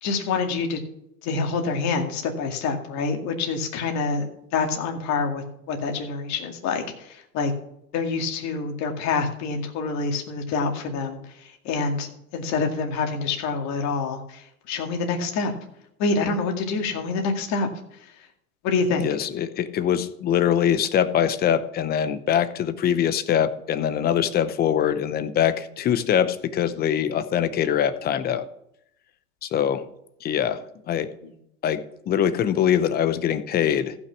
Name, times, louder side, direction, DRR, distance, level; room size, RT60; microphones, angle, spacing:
voice 1, 0.0-0.8 1.2-7.5 7.9-11.2 11.6-14.4 14.7-15.5 16.0-17.7 18.6-19.0, left 4 dB, 35° left, 3 dB, 2.2 m, -26 dB
voice 2, 19.0-28.5 29.4-29.8 30.2-31.1 31.6-33.9, left 9 dB, 20° left, 13 dB, 0.7 m, -23 dB
15.0 x 6.1 x 5.9 m, 0.77 s
hypercardioid pair, 130°, 45 cm